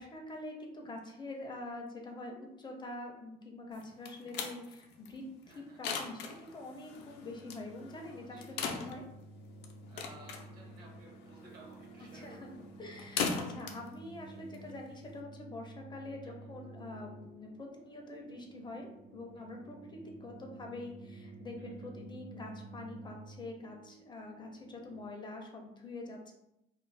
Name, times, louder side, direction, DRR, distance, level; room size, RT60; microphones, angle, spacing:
voice 1, 0.0-9.0 12.1-26.3, left 2 dB, 25° left, 1 dB, 0.4 m, -45 dB
sound 1, 3.7-15.2, left 5 dB, 85° left, 0.4 m, -41 dB
voice 2, 5.5-5.8 8.3-8.9 9.9-12.4 16.2-16.3 21.6-21.9, right 2 dB, 65° right, -2 dB, 1.0 m, -56 dB
sound 2, 7.0-25.1, right 2 dB, 85° right, 0.7 m, -52 dB
2.4 x 2.0 x 3.2 m, 0.86 s
cardioid pair, 110°, 17 cm